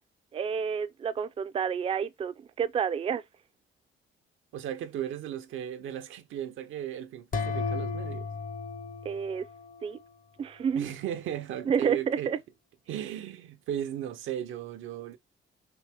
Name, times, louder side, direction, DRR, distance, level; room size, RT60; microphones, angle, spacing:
voice 1, 0.3-3.2 9.0-9.4 9.8-10.0 10.4-10.9 11.7-12.4, right 7 dB, 30° right, 0.4 m, -29 dB
voice 2, 4.5-8.3 10.7-12.3 12.9-15.2, right 11 dB, 80° right, 0.6 m, -36 dB
sound 1, 7.3-10.1, left 5 dB, 45° left, 0.7 m, -34 dB
3.8 x 2.9 x 3.3 m
cardioid pair, 90°, 20 cm